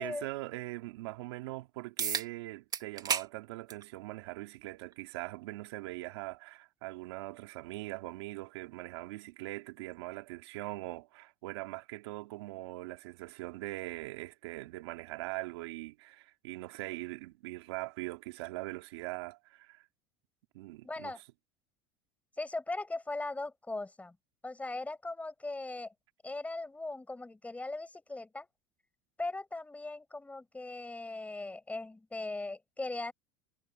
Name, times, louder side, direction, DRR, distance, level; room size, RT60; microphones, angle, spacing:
voice 1, 0.0-19.8 20.5-21.1, right 20 dB, 80° right, 2.7 m, -41 dB
sound 1, 2.0-2.3 2.7-3.3 3.7-3.8 4.9-5.0 9.9-10.0, right 7 dB, 30° right, 2.7 m, -32 dB
voice 2, 20.8-21.2 22.4-24.2 24.4-25.9 26.2-28.5 29.2-33.1, left 2 dB, 10° left, 5.5 m, -39 dB
supercardioid pair, 105°, 13 cm